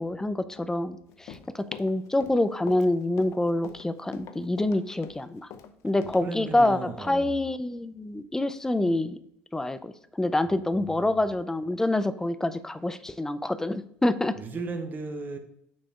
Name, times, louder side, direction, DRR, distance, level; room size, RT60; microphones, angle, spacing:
voice 1, 0.0-5.5 5.8-9.2 9.5-14.4, left 1 dB, 10° left, 0.4 m, -27 dB
Run, 1.1-6.2 6.6-6.7, left 8 dB, 65° left, 0.6 m, -43 dB
voice 2, 6.0-7.4 10.9-11.2 14.3-15.4, right 3 dB, 35° right, 1.0 m, -36 dB
6.3 x 4.1 x 3.7 m
supercardioid pair, 90°, 5 cm